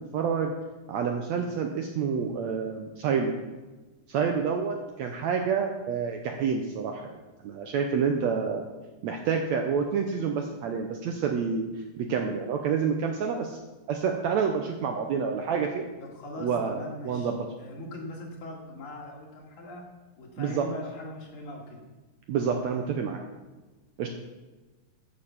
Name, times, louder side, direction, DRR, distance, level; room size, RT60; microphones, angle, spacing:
voice 1, 0.1-0.5 0.9-3.3 4.1-7.1 7.4-8.7 9.0-11.7 12.0-13.6 13.9-15.8 16.4-16.8 17.0-17.4 20.4-20.6 22.3-23.2 24.0-24.1, right 6 dB, 75° right, 3 dB, 1.7 m, -28 dB
voice 2, 16.0-17.3 17.6-19.8 20.2-21.8, left 1 dB, 65° left, -1 dB, 3.3 m, -40 dB
13.5 x 6.5 x 5.7 m, 1.2 s
omnidirectional pair, 3.9 m